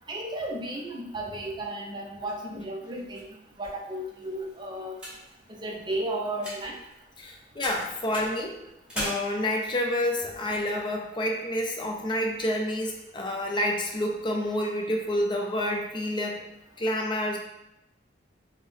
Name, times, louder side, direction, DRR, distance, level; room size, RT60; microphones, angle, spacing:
voice 1, 0.1-3.3 3.6-5.0 5.5-6.8, right 1 dB, 25° right, 0 dB, 0.5 m, -34 dB
sound 1, 2.3-7.3 7.6-9.0, equal, 5° right, 1.5 m, -41 dB
voice 2, 7.2-8.6 8.9-16.4 16.8-17.4, left 1 dB, 25° left, 1 dB, 0.5 m, -28 dB
5.3 x 2.1 x 3.2 m, 0.87 s
head